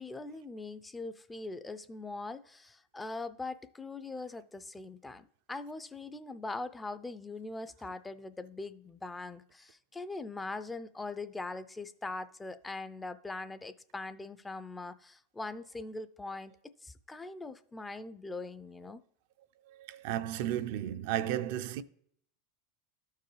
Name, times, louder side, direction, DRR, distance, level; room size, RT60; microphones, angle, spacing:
voice 1, 0.0-19.0, left 3 dB, 10° left, 0.4 m, -41 dB
voice 2, 19.7-21.8, right 12 dB, 65° right, 0.4 m, -34 dB
12.5 x 4.6 x 3.2 m
hypercardioid pair, 105°, 0 cm